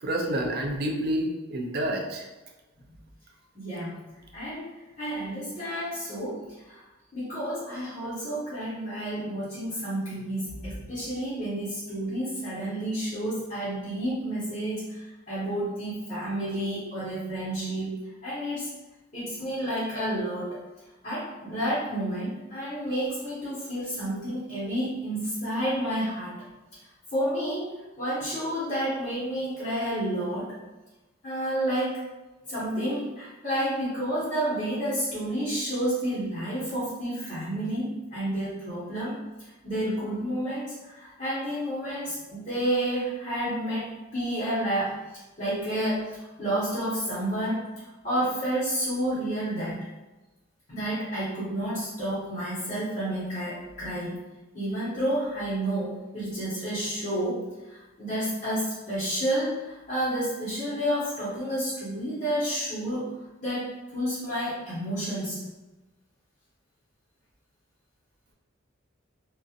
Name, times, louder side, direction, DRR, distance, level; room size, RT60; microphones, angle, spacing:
voice 1, 0.0-2.2, right 1 dB, 45° right, 1 dB, 0.4 m, -28 dB
voice 2, 3.5-4.0 4.3-4.7 5.0-6.4 6.7-6.8 7.1-18.7 19.1-20.6 21.0-26.4 27.1-27.7 28.0-30.6 31.2-32.1 32.5-45.0 45.4-47.6 48.0-49.9 50.7-54.2 54.5-63.1 63.4-65.4, right 1 dB, 35° left, -11 dB, 1.0 m, -30 dB
2.8 x 2.5 x 2.4 m, 1.1 s
head